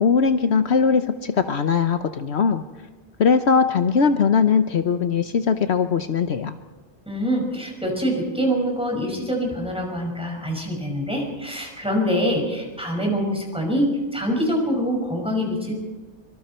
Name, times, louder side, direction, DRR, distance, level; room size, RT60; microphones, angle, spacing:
voice 1, 0.0-2.6 3.2-6.6, left 5 dB, 70° left, 9 dB, 1.1 m, -20 dB
voice 2, 7.1-15.7, equal, 5° right, 0 dB, 5.8 m, -25 dB
24.5 x 24.5 x 4.4 m, 1.3 s
omnidirectional pair, 1.2 m